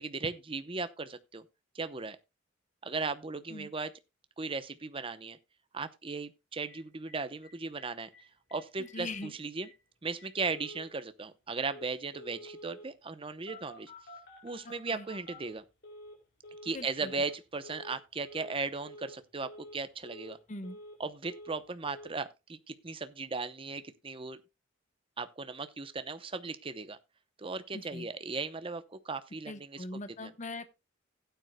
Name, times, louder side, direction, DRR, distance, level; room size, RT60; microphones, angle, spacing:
voice 1, 0.0-1.4 1.7-2.2 2.8-3.9 4.4-5.4 5.7-8.1 8.5-9.7 10.0-13.9 14.4-15.6 16.6-20.4 21.0-24.4 25.2-27.0 27.4-30.3, right 4 dB, 25° right, 0.7 m, -37 dB
Telephone, 6.7-6.8 7.1-7.2 7.4-7.5 7.8-8.2 8.5-8.6 8.8-9.2 9.6-9.7 10.2-10.9 11.6-11.9 12.1-12.9 13.5-16.2 16.4-16.8 17.0-17.4 17.6-18.0 18.2-18.6 18.8-19.2 19.4-19.8 20.0-21.0 21.2-21.6 21.8-22.1, left 1 dB, 55° left, 5.0 m, -49 dB
voice 2, 8.8-9.3 14.6-15.1 16.7-17.1 20.5-20.8 27.7-28.1 29.4-30.6, left 2 dB, 40° left, 0.9 m, -41 dB
16.0 x 9.3 x 2.2 m
head